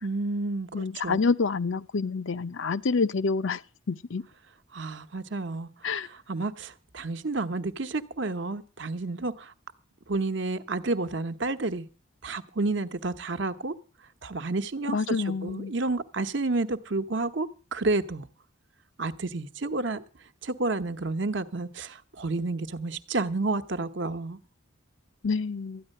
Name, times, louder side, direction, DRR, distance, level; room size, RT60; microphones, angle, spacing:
voice 1, 0.0-1.2 4.7-5.7 6.0-9.5 10.1-11.9 12.2-13.7 14.2-18.3 19.0-20.0 20.4-24.4, right 3 dB, 60° right, 1.0 m, -30 dB
voice 2, 0.7-3.6 3.9-4.2 5.8-6.1 14.9-15.7 25.2-25.8, left 4 dB, 65° left, 0.6 m, -27 dB
13.5 x 10.0 x 6.5 m
head